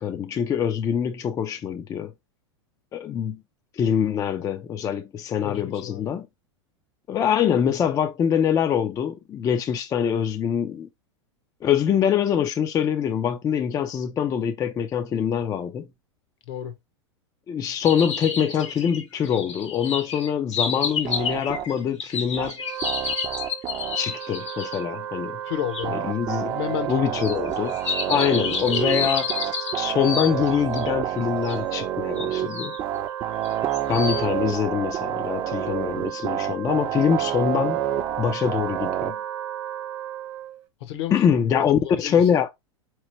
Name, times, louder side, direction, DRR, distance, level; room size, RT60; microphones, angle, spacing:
voice 1, 0.0-2.1 2.9-3.4 3.7-6.3 7.1-10.9 11.6-15.9 17.5-22.6 23.9-25.4 25.9-26.5 26.9-27.8 28.1-29.3 29.7-32.7 33.9-37.8 38.2-39.2 41.1-42.5, left 8 dB, 25° left, 0.4 m, -24 dB
voice 2, 5.4-6.1 16.5-16.7 25.5-26.0 26.4-27.2 40.8-41.1 41.8-42.2, left 11 dB, 65° left, 0.9 m, -31 dB
sound 1, 17.8-24.8 25.7-25.8 27.2-30.9 31.4-31.6 32.2-32.8 33.4-34.3, left 5 dB, 85° left, 1.5 m, -30 dB
sound 2, 21.0-21.7 22.4-22.5 22.8-24.0 25.8-32.5 32.8-39.1, right 11 dB, 35° right, 0.6 m, -29 dB
Wind instrument woodwind instrument, 22.5-40.6, right 11 dB, 80° right, 0.7 m, -35 dB
4.1 x 3.0 x 3.0 m
hypercardioid pair, 105°, 15 cm